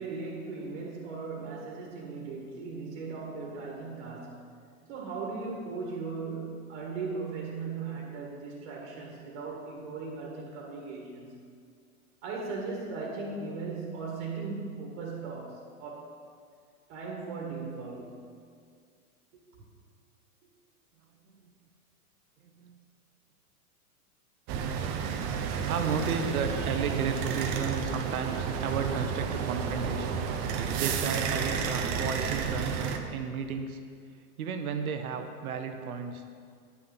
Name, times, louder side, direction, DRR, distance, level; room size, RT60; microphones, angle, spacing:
voice 1, 0.0-4.4 4.9-11.5 12.2-16.2 16.9-18.3 19.5-19.6, right 4 dB, 50° right, -1 dB, 1.6 m, -38 dB
voice 2, 22.4-22.8 25.6-30.2 30.7-33.8 34.4-36.2, right 6 dB, 75° right, 6 dB, 0.9 m, -33 dB
sound 1, 24.5-33.0, right 6 dB, 35° right, 0.6 m, -31 dB
9.8 x 5.9 x 3.9 m, 2.2 s
hypercardioid pair, 115°, 44 cm